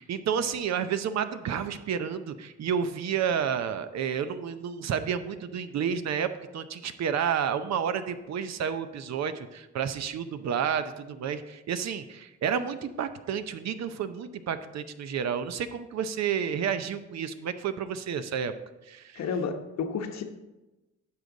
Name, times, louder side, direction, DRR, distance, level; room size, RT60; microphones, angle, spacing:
voice 1, 0.0-18.5 18.9-19.2, right 7 dB, 60° right, 10 dB, 0.7 m, -30 dB
voice 2, 19.2-20.2, left 5 dB, 60° left, 6 dB, 1.1 m, -31 dB
10.5 x 6.4 x 3.9 m, 1.0 s
cardioid pair, 90°, 30 cm